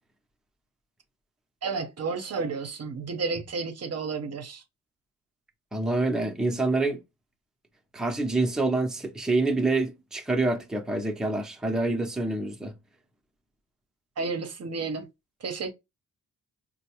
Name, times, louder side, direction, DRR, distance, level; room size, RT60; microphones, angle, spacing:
voice 1, 1.6-4.6 14.2-15.1 15.4-15.7, right 4 dB, 50° right, 0.7 m, -31 dB
voice 2, 5.7-7.0 7.9-12.7, right 2 dB, ahead, 0.6 m, -26 dB
4.3 x 2.0 x 2.9 m
cardioid pair, 100°, 33 cm